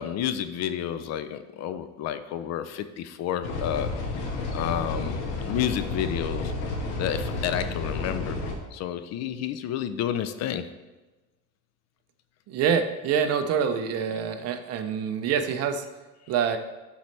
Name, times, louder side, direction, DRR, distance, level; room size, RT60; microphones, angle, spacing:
voice 1, 0.0-4.0 4.5-6.5 7.0-8.4 8.7-10.7, left 10 dB, 45° left, 11 dB, 0.5 m, -30 dB
sound 1, 3.4-8.5, left 2 dB, 85° left, 1.5 m, -31 dB
voice 2, 12.5-15.8 16.3-16.6, right 7 dB, 45° right, 8 dB, 0.6 m, -26 dB
11.5 x 4.2 x 3.3 m, 1.1 s
cardioid pair, 140°, 36 cm